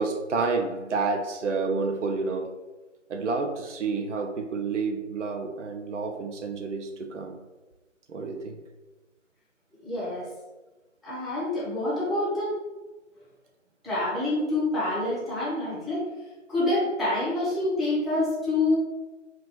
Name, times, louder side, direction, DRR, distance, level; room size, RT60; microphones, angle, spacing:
voice 1, 0.0-2.5 3.1-7.3 8.1-8.6, right 4 dB, 70° right, 4 dB, 0.5 m, -29 dB
voice 2, 9.8-10.3 11.0-12.6 13.8-16.1 16.5-18.8, left 2 dB, ahead, -11 dB, 0.5 m, -27 dB
2.3 x 2.2 x 3.8 m, 1.2 s
figure-of-eight pair, 180°, 38 cm